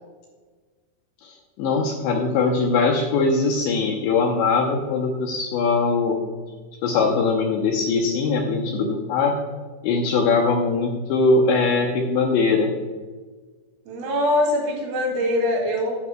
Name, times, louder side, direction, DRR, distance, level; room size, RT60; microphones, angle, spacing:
voice 1, 1.2-6.2 6.8-9.4 9.8-12.7, left 4 dB, 80° left, 1 dB, 2.6 m, -21 dB
voice 2, 13.9-16.0, left 1 dB, 75° right, -1 dB, 5.3 m, -23 dB
11.0 x 10.5 x 2.2 m, 1.4 s
omnidirectional pair, 5.9 m